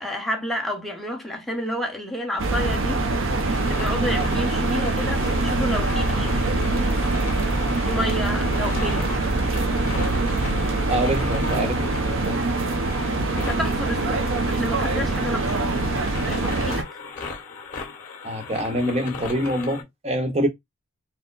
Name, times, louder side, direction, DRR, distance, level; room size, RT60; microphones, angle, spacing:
voice 1, 0.0-3.0 3.7-6.5 7.8-9.1 13.3-15.9 16.3-16.9, equal, ahead, 1.0 m, -30 dB
sound 1, 2.4-16.8, right 2 dB, 60° right, 0.7 m, -24 dB
sound 2, 3.5-19.8, left 5 dB, 35° left, 2.1 m, -38 dB
voice 2, 10.9-12.4 18.2-20.5, right 1 dB, 30° right, 0.9 m, -25 dB
4.4 x 2.1 x 3.9 m
head